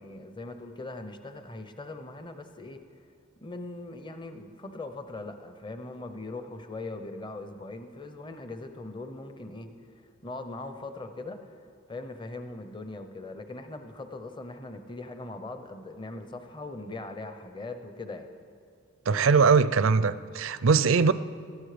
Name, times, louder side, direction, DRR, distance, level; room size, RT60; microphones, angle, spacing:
voice 1, 0.0-2.8 3.4-9.7 10.2-18.3, left 2 dB, 20° left, 0.7 m, -40 dB
voice 2, 19.1-21.1, right 5 dB, 60° right, 0.4 m, -21 dB
19.0 x 13.5 x 5.0 m
head